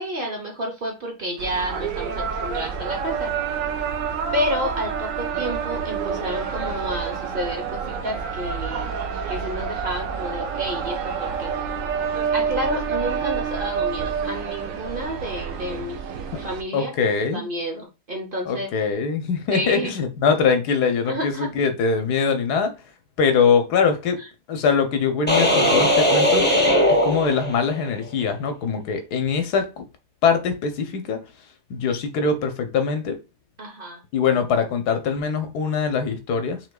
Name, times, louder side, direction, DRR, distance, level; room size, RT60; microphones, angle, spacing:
voice 1, 0.0-3.3 4.3-8.9 9.3-11.5 12.3-16.0 16.4-18.7 19.5-20.0 21.0-21.5 24.2-24.3 33.6-34.0, equal, 40° right, 0.9 m, -30 dB
sound 1, 1.4-16.6, right 6 dB, 65° right, 1.0 m, -28 dB
voice 2, 16.7-17.4 18.5-22.7 23.2-24.2 24.5-26.5 27.0-29.9 30.2-31.2 31.7-33.2 34.1-36.6, left 5 dB, 80° left, 1.4 m, -22 dB
sound 2, 25.3-27.9, equal, 10° left, 0.8 m, -19 dB
5.7 x 2.9 x 2.3 m
omnidirectional pair, 1.7 m